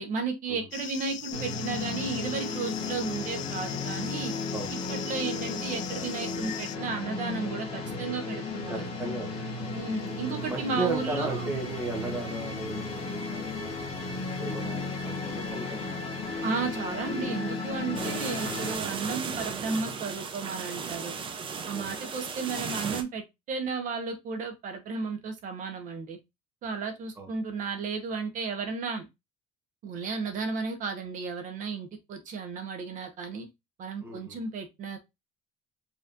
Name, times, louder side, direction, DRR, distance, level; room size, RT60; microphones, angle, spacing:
voice 1, 0.0-4.3 4.9-8.9 9.7-11.5 16.4-21.2 21.6-26.2 26.6-29.1 29.8-33.5 33.8-35.0, right 4 dB, 50° right, 1.1 m, -34 dB
sound 1, 0.7-6.8, left 12 dB, 50° left, 0.4 m, -40 dB
sound 2, 1.3-18.8, left 3 dB, 35° left, 1.6 m, -34 dB
voice 2, 8.7-9.7 10.5-13.8 14.3-16.4 17.1-17.3 17.9-18.2 20.8-20.9 21.7-21.9 27.2-27.3 34.0-34.4, right 2 dB, 15° right, 1.1 m, -36 dB
sound 3, 18.0-23.0, right 5 dB, 30° right, 0.8 m, -35 dB
5.1 x 3.1 x 2.5 m
cardioid pair, 140°, 16 cm